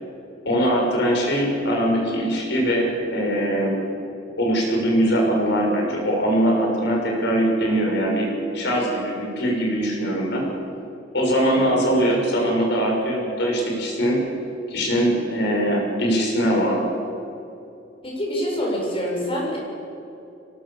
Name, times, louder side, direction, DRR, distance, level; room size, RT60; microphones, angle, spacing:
voice 1, 0.4-3.7 4.4-8.3 8.5-10.4 11.1-14.2 14.7-16.8, equal, 60° left, -1 dB, 6.5 m, -21 dB
voice 2, 18.0-19.6, equal, 30° left, -2 dB, 7.0 m, -26 dB
24.0 x 19.0 x 7.2 m, 2.7 s
head